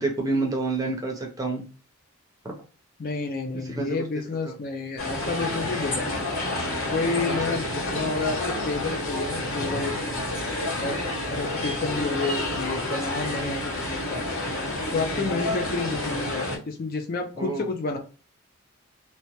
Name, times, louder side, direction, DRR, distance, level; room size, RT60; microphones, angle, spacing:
voice 1, 0.0-1.6 3.5-4.5 7.3-7.6 13.4-13.6 15.1-15.4 17.4-17.6, right 3 dB, 15° right, 1 dB, 0.5 m, -29 dB
voice 2, 3.0-6.1 6.9-10.0 10.8-11.0 11.3-14.3 14.9-18.0, left 3 dB, 40° left, 4 dB, 0.4 m, -30 dB
sound 1, 5.0-16.6, left 2 dB, 80° left, 1.5 m, -29 dB
2.8 x 2.1 x 2.9 m, 0.35 s
head